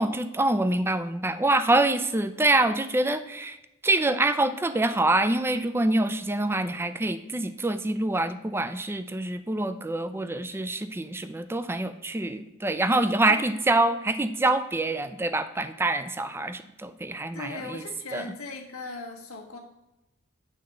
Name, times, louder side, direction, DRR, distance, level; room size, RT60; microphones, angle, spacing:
voice 1, 0.0-3.6 3.8-17.8 18.1-18.2, right 2 dB, 10° right, 11 dB, 0.3 m, -25 dB
voice 2, 13.3-13.7 17.3-19.6, left 3 dB, 75° left, 0 dB, 1.4 m, -39 dB
8.7 x 3.9 x 6.5 m, 0.93 s
head